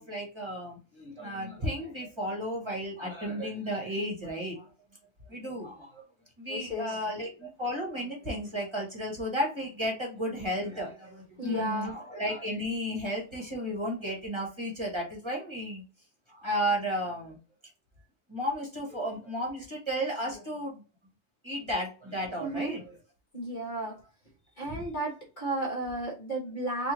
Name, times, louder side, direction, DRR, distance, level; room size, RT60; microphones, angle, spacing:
voice 1, 0.0-4.6 5.3-6.0 6.4-15.8 16.3-17.4 18.3-20.8 21.4-23.0 24.7-24.8, equal, 25° right, -1 dB, 1.3 m, -33 dB
voice 2, 6.5-7.0 11.4-12.0 22.4-22.8 23.3-24.0 24.6-26.9, right 1 dB, 45° left, 0 dB, 1.3 m, -33 dB
4.4 x 2.7 x 3.1 m, 0.34 s
omnidirectional pair, 1.2 m